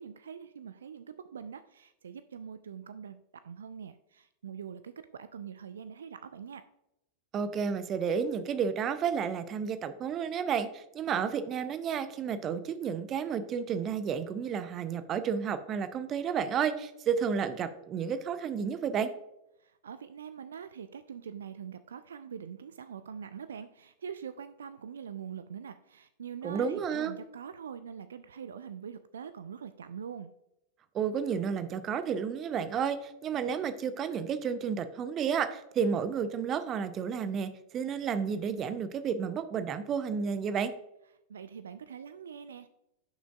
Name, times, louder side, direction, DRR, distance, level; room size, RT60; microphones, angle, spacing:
voice 1, 0.0-6.6 19.6-30.3 41.3-42.7, right 7 dB, 65° right, 13 dB, 0.3 m, -44 dB
voice 2, 7.3-19.1 26.4-27.1 30.9-40.7, right 7 dB, 30° right, 12 dB, 0.6 m, -31 dB
10.5 x 5.9 x 2.3 m, 0.88 s
figure-of-eight pair, 90°, 0 cm